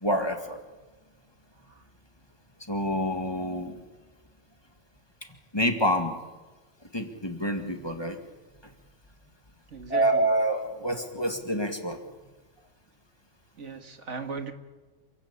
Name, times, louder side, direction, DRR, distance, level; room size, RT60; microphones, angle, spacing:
voice 1, 0.0-0.6 2.7-3.8 5.5-6.2 6.9-8.2 9.9-12.0, equal, 20° left, 5 dB, 2.0 m, -27 dB
voice 2, 9.7-10.3 13.6-14.5, right 4 dB, 70° right, 6 dB, 2.0 m, -37 dB
27.5 x 16.0 x 8.5 m, 1.3 s
omnidirectional pair, 1.3 m